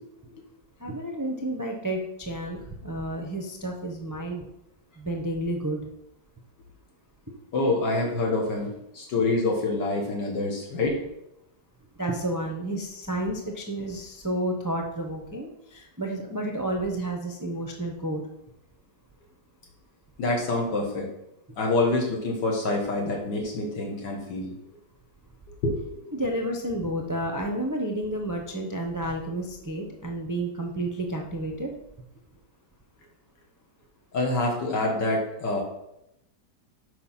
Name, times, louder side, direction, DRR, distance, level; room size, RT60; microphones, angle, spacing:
voice 1, 0.8-4.4 5.0-5.8 7.3-7.4 10.4-10.5 12.0-18.2 26.1-31.7, right 1 dB, 20° right, 1 dB, 0.4 m, -31 dB
voice 2, 7.5-11.0 20.2-21.1 21.6-24.5 25.6-26.1 34.1-35.6, left 2 dB, 75° left, -1 dB, 1.9 m, -26 dB
6.7 x 5.0 x 5.7 m, 0.82 s
omnidirectional pair, 1.9 m